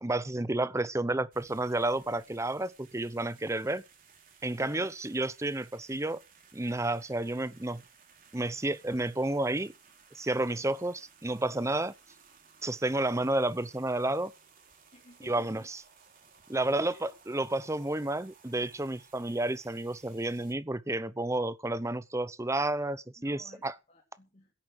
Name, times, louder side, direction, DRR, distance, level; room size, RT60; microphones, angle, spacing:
voice 1, 0.0-3.8 4.4-6.2 6.5-7.8 8.3-9.7 10.1-11.9 12.6-14.3 15.2-15.8 16.5-23.8, right 2 dB, 15° right, 0.8 m, -31 dB
sound 1, 1.3-20.5, right 6 dB, 50° right, 3.4 m, -60 dB
voice 2, 4.5-4.9 14.9-15.7 16.6-17.1 23.2-24.5, left 1 dB, 35° left, 2.9 m, -55 dB
16.5 x 8.6 x 6.5 m
head